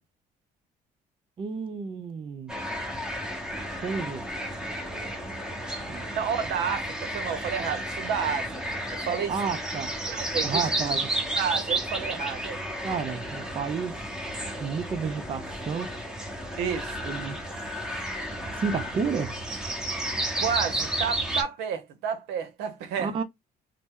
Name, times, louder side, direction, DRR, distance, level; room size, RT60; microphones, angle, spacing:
voice 1, 1.4-2.5 3.8-4.2 5.9-6.1 9.3-9.9 10.4-11.1 12.8-14.0 14.6-16.0 17.1-17.7 18.6-19.4 23.0-23.2, right 5 dB, 30° right, 0.5 m, -31 dB
sound 1, 2.5-21.4, right 1 dB, 5° right, 0.9 m, -32 dB
voice 2, 6.1-8.6 8.9-9.3 10.1-10.6 11.4-12.6 16.6-17.0 20.3-23.1, right 7 dB, 85° right, 0.8 m, -30 dB
2.8 x 2.1 x 3.5 m
cardioid pair, 110°, 17 cm